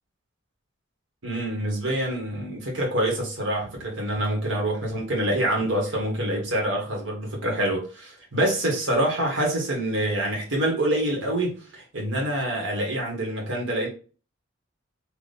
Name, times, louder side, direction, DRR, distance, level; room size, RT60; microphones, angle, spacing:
voice 1, 1.2-13.9, right 1 dB, 65° right, 1.6 m, -26 dB
4.2 x 2.8 x 3.4 m
head